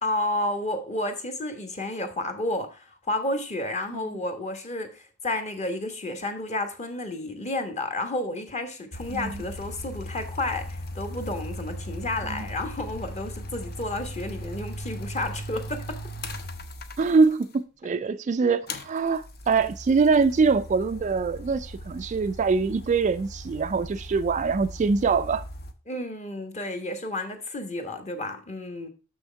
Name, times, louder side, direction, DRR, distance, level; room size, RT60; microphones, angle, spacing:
voice 1, 0.0-16.0 25.9-28.9, left 1 dB, 35° left, 1.2 m, -31 dB
sound 1, 8.9-17.6 18.7-25.7, equal, 50° left, 0.8 m, -38 dB
voice 2, 9.1-9.4 12.2-12.5 17.0-25.4, right 4 dB, 35° right, 0.3 m, -24 dB
6.4 x 6.2 x 4.4 m
head